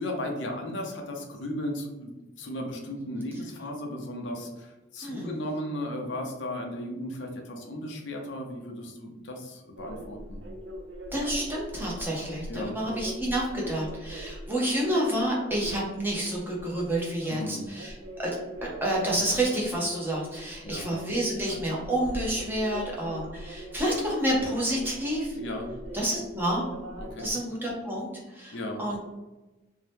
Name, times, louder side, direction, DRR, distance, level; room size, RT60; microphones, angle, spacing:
voice 1, 0.0-2.1 2.4-10.4 12.5-12.8 17.3-17.7 20.6-20.9 25.3-26.0 27.0-27.3 28.5-28.8, left 1 dB, 70° left, 2 dB, 0.5 m, -35 dB
sound 1, 9.8-27.3, equal, 80° right, 0.4 m, -41 dB
voice 2, 11.1-18.3 18.8-25.4 25.9-26.6 27.2-29.0, right 1 dB, 10° right, -4 dB, 0.6 m, -29 dB
2.7 x 2.1 x 3.3 m, 1.1 s
head